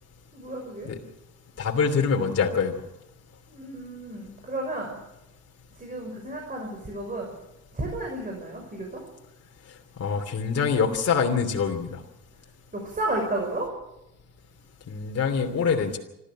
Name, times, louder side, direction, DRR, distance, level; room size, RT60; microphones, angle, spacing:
voice 1, 0.3-0.9 3.5-5.0 5.8-7.3 7.7-9.0 12.7-13.7, right 2 dB, 30° right, 1 dB, 6.0 m, -32 dB
voice 2, 1.6-2.7 10.0-12.0 14.9-16.0, left 6 dB, 55° left, 2 dB, 2.9 m, -24 dB
26.0 x 13.5 x 7.5 m, 0.90 s
cardioid pair, 90°, 30 cm